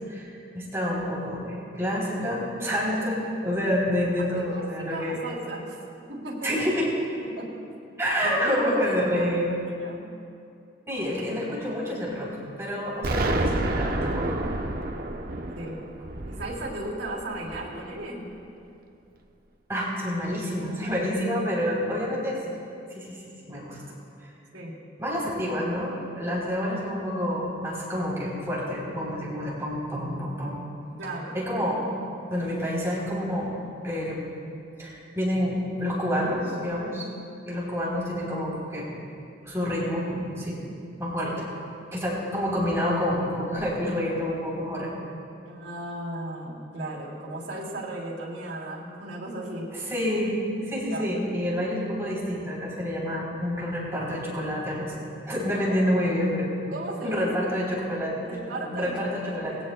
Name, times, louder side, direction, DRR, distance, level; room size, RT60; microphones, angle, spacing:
voice 1, 0.1-5.2 6.4-6.9 8.0-9.6 10.9-12.3 12.6-14.4 19.7-22.4 22.9-23.2 23.4-23.8 24.2-24.3 25.0-30.6 31.3-31.8 32.3-33.6 33.8-34.3 34.8-37.1 37.5-38.9 39.4-40.6 41.0-41.3 41.9-44.9 49.7-50.3 50.7-54.9 55.2-56.6 57.0-58.4 58.7-59.6, equal, 15° right, -6 dB, 3.5 m, -28 dB
voice 2, 4.2-5.8 6.1-6.5 7.4-7.5 8.2-8.8 9.1-9.3 9.6-10.1 15.6-15.8 16.2-18.3 21.6-21.7 24.5-24.8 31.0-31.4 41.2-41.3 45.4-49.7 50.9-51.1 55.7-55.8 56.7-57.3 58.2-58.9 59.2-59.6, right 1 dB, 80° right, -3 dB, 3.3 m, -36 dB
Explosion, 13.0-17.9, right 2 dB, 55° right, 0.8 m, -29 dB
20.0 x 17.0 x 2.3 m, 2.5 s
head